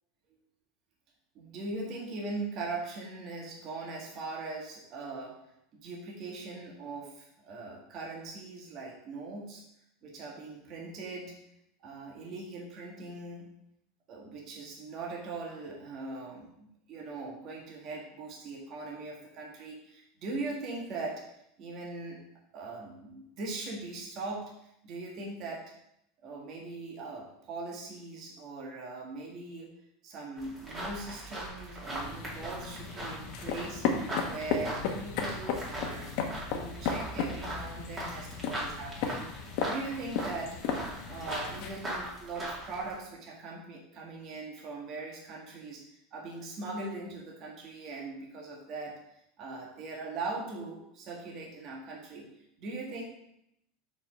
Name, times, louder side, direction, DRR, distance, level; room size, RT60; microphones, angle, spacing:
voice 1, 1.3-5.4 5.7-9.6 10.0-11.3 11.8-13.5 14.1-21.2 21.6-22.2 22.5-25.6 26.2-29.7 30.0-33.8 34.3-36.2 36.5-40.6 41.1-45.8 46.1-49.0 49.4-52.3 52.6-53.0, right 3 dB, 40° right, -1 dB, 1.5 m, -40 dB
sound 1, 30.4-42.9, right 1 dB, 20° right, 2.3 m, -40 dB
sound 2, 31.8-41.7, left 5 dB, 60° left, 1.1 m, -35 dB
5.4 x 4.8 x 5.0 m, 0.77 s
supercardioid pair, 145°, 0 cm